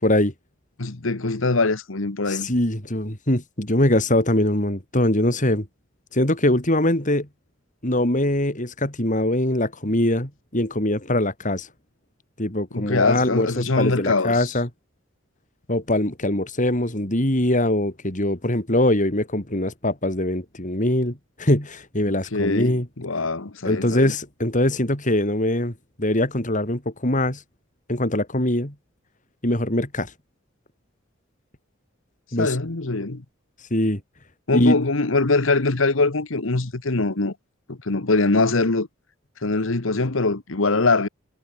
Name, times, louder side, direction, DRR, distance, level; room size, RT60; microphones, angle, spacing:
voice 1, 0.0-0.3 2.3-5.7 6.1-7.3 7.8-11.7 12.4-14.7 15.7-22.9 23.6-27.4 27.9-28.7 29.4-30.1 32.3-32.6 33.6-34.0 34.5-34.8, left 1 dB, 40° left, 5.4 m, -22 dB
voice 2, 0.8-2.5 12.7-14.5 22.3-24.1 32.4-33.2 34.5-37.3 37.7-38.9 39.4-41.1, left 3 dB, 80° left, 1.4 m, -22 dB
head